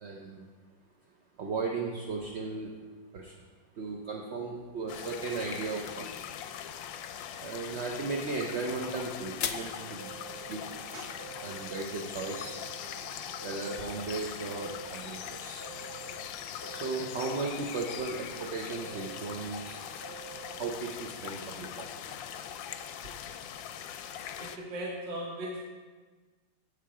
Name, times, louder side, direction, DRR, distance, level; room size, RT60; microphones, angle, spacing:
voice 1, 0.0-0.4 1.4-2.7 3.1-3.3 3.8-6.1 7.4-10.1 10.5-10.7 11.4-12.6 13.4-15.6 16.7-19.8 20.6-21.9, right 3 dB, 55° right, -1 dB, 0.8 m, -36 dB
sound 1, 4.9-24.6, left 9 dB, 90° left, 1.3 m, -41 dB
sound 2, 7.8-13.7, left 9 dB, 70° left, 1.0 m, -44 dB
sound 3, 10.0-11.9 12.2-14.1 14.4-16.3 16.6-18.5 18.8-20.7, right 11 dB, 15° right, 0.9 m, -49 dB
voice 2, 24.3-25.6, right 1 dB, 75° right, -1 dB, 1.6 m, -38 dB
8.4 x 7.7 x 4.8 m, 1.4 s
omnidirectional pair, 2.0 m